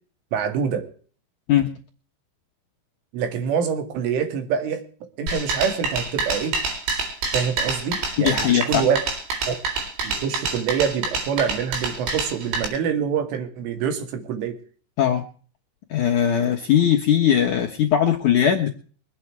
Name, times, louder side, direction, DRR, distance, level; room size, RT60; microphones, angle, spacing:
voice 1, 0.3-0.8 3.1-4.8 5.2-6.6 7.3-9.0 9.5-9.6 10.0-14.6, right 7 dB, 90° right, 7 dB, 4.7 m, -25 dB
sound 1, 5.3-12.7, right 3 dB, 70° right, 6.3 m, -27 dB
voice 2, 8.2-8.9 15.0-15.2 15.9-18.7, left 9 dB, 70° left, 0 dB, 1.9 m, -19 dB
23.5 x 8.7 x 4.7 m, 0.42 s
omnidirectional pair, 5.5 m